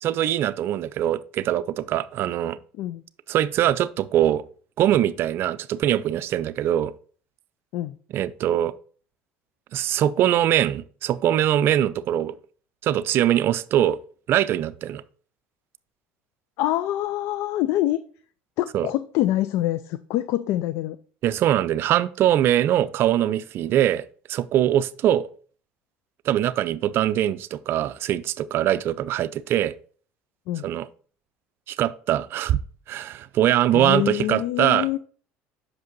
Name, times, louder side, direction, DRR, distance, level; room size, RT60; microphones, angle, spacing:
voice 1, 0.0-2.6 3.3-4.4 4.8-6.9 8.1-8.7 9.7-12.3 12.8-14.0 14.3-15.0 18.7-18.9 21.2-24.0 24.3-25.3 26.2-29.7 30.6-30.9 31.7-32.6 32.9-35.0, right 11 dB, 55° right, 0.4 m, -22 dB
voice 2, 16.6-18.0 18.6-21.0 30.5-30.7 33.7-35.0, left 14 dB, 70° left, 0.4 m, -25 dB
6.0 x 5.1 x 4.0 m
supercardioid pair, 100°, 5 cm